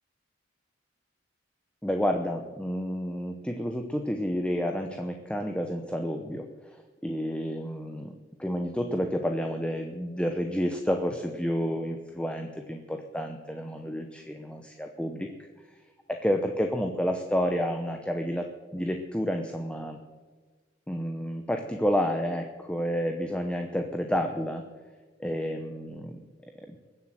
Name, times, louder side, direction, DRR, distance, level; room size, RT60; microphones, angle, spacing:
voice 1, 1.8-6.4 7.0-8.1 8.4-15.3 16.1-18.5 18.7-20.0 20.9-24.6 25.2-26.2 26.6-26.8, equal, 5° left, 4 dB, 0.8 m, -30 dB
21.5 x 7.8 x 7.6 m, 1.4 s
head